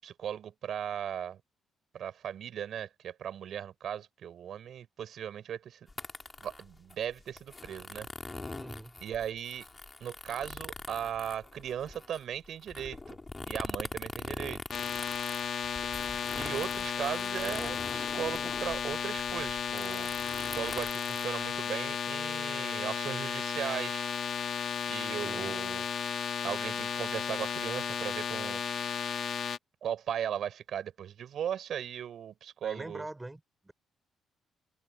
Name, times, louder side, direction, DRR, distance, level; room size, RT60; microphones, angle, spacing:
voice 1, 0.0-1.4 1.9-5.8 6.4-8.1 9.0-9.7 10.0-13.2 13.5-14.6 16.3-20.1 20.4-24.0 24.9-25.9 26.4-28.6 29.8-33.1, right 9 dB, 65° right, 7.7 m, -37 dB
sound 1, 5.9-22.0, left 3 dB, 20° left, 5.6 m, -43 dB
voice 2, 8.6-8.9 25.2-25.6 32.6-33.7, right 2 dB, 15° right, 7.5 m, -44 dB
sound 2, 14.7-29.6, left 7 dB, 60° left, 2.9 m, -34 dB
cardioid pair, 90°, 0 cm